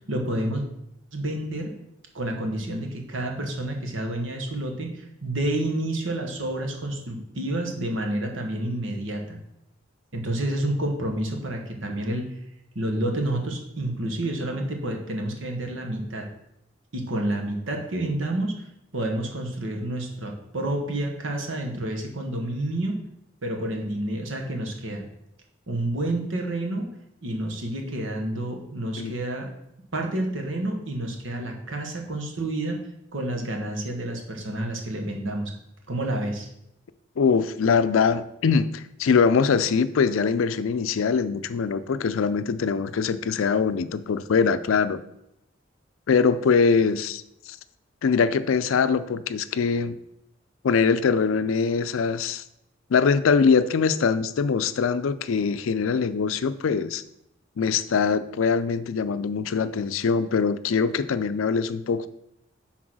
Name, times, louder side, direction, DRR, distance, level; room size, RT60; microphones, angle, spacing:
voice 1, 0.1-0.6 1.1-1.7 2.1-9.4 10.1-12.3 12.7-16.2 16.9-18.5 18.9-23.0 23.4-25.0 25.7-26.9 27.2-29.5 29.9-32.8 33.1-35.5 35.9-36.5, right 1 dB, 75° right, 2 dB, 1.3 m, -29 dB
voice 2, 37.2-45.0 46.1-47.6 48.0-49.9 50.6-52.4 52.9-57.0 57.6-62.1, left 5 dB, 90° left, 13 dB, 0.4 m, -23 dB
6.2 x 4.1 x 6.1 m, 0.81 s
head